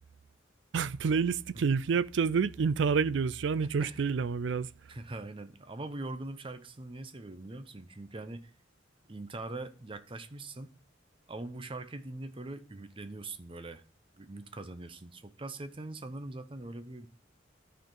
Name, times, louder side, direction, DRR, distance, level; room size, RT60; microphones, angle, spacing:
voice 1, 0.7-4.7, right 5 dB, 70° right, 0.4 m, -28 dB
voice 2, 3.6-4.1 4.9-8.5 9.1-10.7 11.3-13.8 14.2-17.1, right 2 dB, 30° right, 0.7 m, -42 dB
13.0 x 4.5 x 3.8 m
head